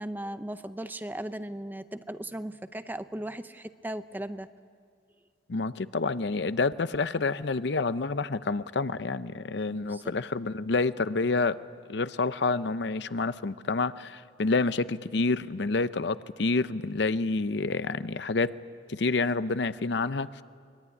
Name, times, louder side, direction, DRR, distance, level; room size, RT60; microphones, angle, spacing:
voice 1, 0.0-4.5 9.3-9.4 9.9-10.1, right 1 dB, 10° right, 11 dB, 0.6 m, -37 dB
voice 2, 5.5-11.6 11.9-18.5 18.9-20.3, left 3 dB, 65° left, 14 dB, 0.6 m, -28 dB
23.5 x 21.0 x 9.8 m, 2.1 s
head